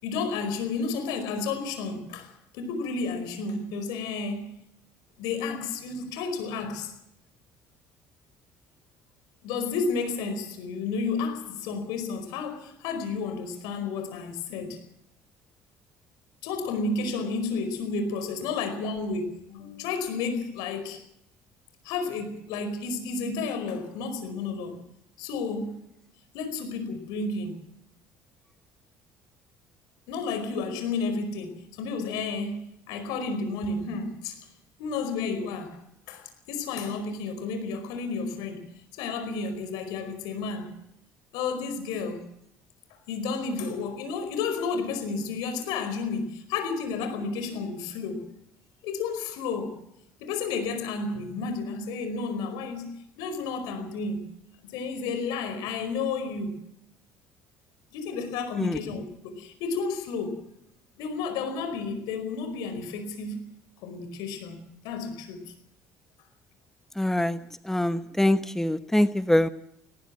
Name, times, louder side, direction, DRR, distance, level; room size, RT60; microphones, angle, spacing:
voice 1, 0.0-4.5 5.2-6.9 9.4-14.8 16.4-21.0 21.8-24.8 25.2-25.8 26.3-27.6 30.1-34.4 34.8-35.8 36.1-38.6 39.0-40.7 41.3-42.2 43.1-48.3 48.8-49.8 50.2-54.3 54.6-56.6 57.9-60.5 61.0-63.5 63.8-65.5 67.8-68.0, left 4 dB, 75° left, 9 dB, 4.8 m, -32 dB
voice 2, 67.0-67.4 67.6-69.5, left 1 dB, 5° left, 12 dB, 1.1 m, -24 dB
19.0 x 18.5 x 7.5 m, 0.76 s
hypercardioid pair, 60°, 7 cm